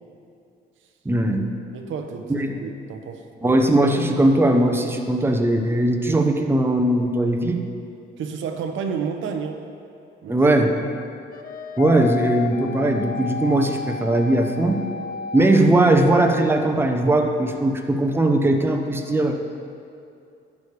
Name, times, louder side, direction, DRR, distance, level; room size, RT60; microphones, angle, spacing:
voice 1, 1.0-1.5 2.3-2.6 3.4-7.7 10.3-10.8 11.8-14.8 15.3-19.4, right 1 dB, 10° right, 4 dB, 0.8 m, -19 dB
voice 2, 1.7-3.5 8.2-9.7 10.2-10.4, right 6 dB, 80° right, 5 dB, 0.8 m, -31 dB
sound 1, 11.3-16.4, left 5 dB, 45° left, 0.4 m, -32 dB
11.5 x 8.3 x 3.4 m, 2.5 s
cardioid pair, 90°, 20 cm